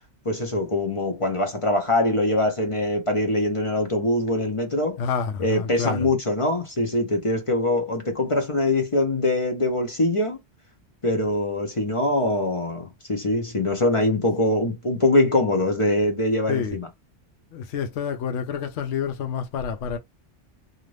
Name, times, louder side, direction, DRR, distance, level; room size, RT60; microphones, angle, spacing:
voice 1, 0.2-5.0 5.4-10.4 11.0-16.9, left 1 dB, 35° left, 0.6 m, -23 dB
voice 2, 5.0-6.1 16.5-16.8 17.5-20.0, left 7 dB, 70° left, 0.9 m, -28 dB
2.6 x 2.5 x 3.1 m
omnidirectional pair, 1.2 m